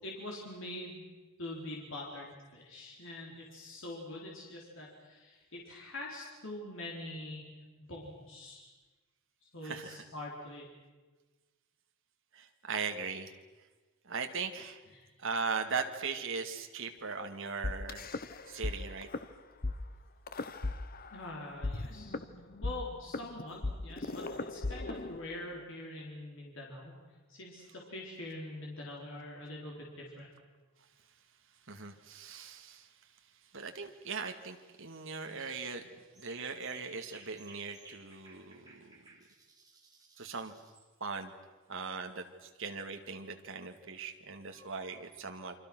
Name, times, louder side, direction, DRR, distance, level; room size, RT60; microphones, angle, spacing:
voice 1, 0.0-1.0 1.4-7.4 7.8-8.7 9.4-10.7 14.9-15.1 21.1-22.1 22.6-26.9 27.3-27.6 27.9-30.3, left 1 dB, 60° left, -2 dB, 4.2 m, -44 dB
voice 2, 9.6-10.0 12.3-13.3 14.1-14.8 15.2-18.1 18.5-19.1 31.7-32.9 33.5-35.9 36.2-39.0 40.2-40.5 41.0-41.3 41.7-45.5, right 5 dB, 60° right, 5 dB, 2.2 m, -39 dB
sound 1, 17.6-18.7 19.0-19.2 19.6-19.7 20.3-21.3 21.6-25.6, left 2 dB, 40° left, 1.0 m, -37 dB
sound 2, 35.4-35.7 36.1-40.9, right 4 dB, 15° right, 3.8 m, -57 dB
28.5 x 25.0 x 6.3 m, 1.3 s
head